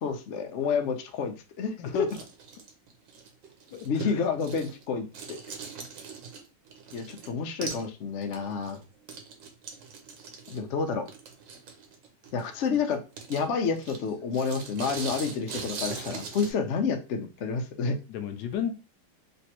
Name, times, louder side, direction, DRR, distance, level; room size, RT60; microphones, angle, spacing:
voice 1, 0.0-2.1 3.9-5.4 6.9-8.8 10.5-11.1 12.3-13.0 13.3-18.0, left 5 dB, 65° left, 0.7 m, -29 dB
sound 1, 2.0-4.9 5.1-7.3 7.6-7.9 8.2-16.5, right 5 dB, 80° right, 1.4 m, -41 dB
voice 2, 3.7-4.2 18.1-18.8, left 8 dB, 80° left, 1.3 m, -33 dB
3.3 x 3.1 x 2.8 m
omnidirectional pair, 2.0 m